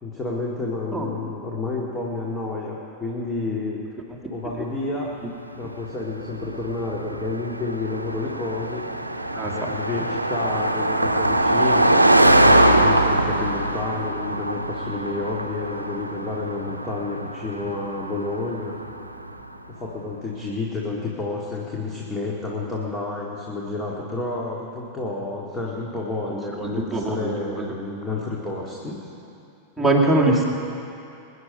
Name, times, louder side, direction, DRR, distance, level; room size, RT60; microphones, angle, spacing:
voice 1, 0.0-3.8 4.3-5.1 5.6-8.9 9.5-18.7 19.7-29.1 30.3-30.4, left 3 dB, 15° left, -3 dB, 2.2 m, -30 dB
Car passing by, 5.7-19.4, right 1 dB, 85° right, 0.7 m, -22 dB
voice 2, 9.3-9.7 26.6-27.6 29.8-30.4, right 2 dB, ahead, -4 dB, 2.3 m, -22 dB
23.0 x 10.5 x 5.5 m, 2.6 s
figure-of-eight pair, 90°, 0 cm